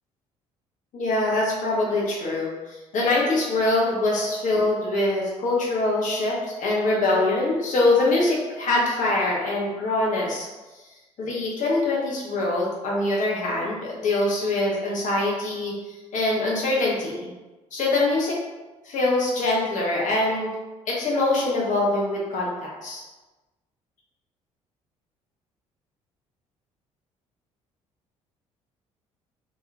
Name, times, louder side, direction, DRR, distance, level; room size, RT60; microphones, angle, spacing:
voice 1, 0.9-10.5 11.2-17.3 17.7-18.4 18.8-20.5 20.9-23.0, left 2 dB, 50° left, -4 dB, 1.1 m, -24 dB
3.2 x 2.9 x 2.4 m, 1.2 s
figure-of-eight pair, 50°, 17 cm